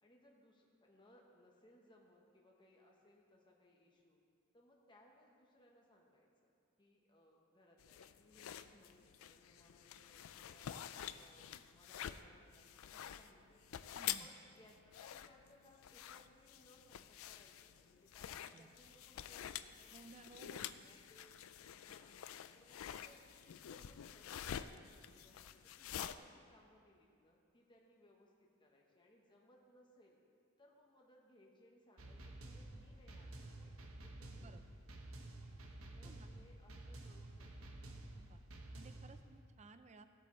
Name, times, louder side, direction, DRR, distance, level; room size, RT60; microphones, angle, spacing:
voice 1, 0.0-4.2 4.5-6.5 6.8-10.7 11.1-13.7 14.2-19.9 20.5-21.4 21.7-22.2 22.5-30.2 30.6-33.7 34.0-34.7 36.0-37.8, left 1 dB, 25° left, -1 dB, 1.1 m, -67 dB
sound 1, 7.8-26.1, left 10 dB, 80° left, 0.4 m, -48 dB
voice 2, 13.9-14.3 18.5-18.7 19.9-20.7 34.4-34.6 36.0-36.3 38.3-38.4 38.7-40.0, right 3 dB, 35° right, 9 dB, 0.5 m, -58 dB
sound 2, 32.0-39.2, right 1 dB, 85° right, 1.0 m, -52 dB
16.0 x 8.0 x 3.2 m, 2.3 s
head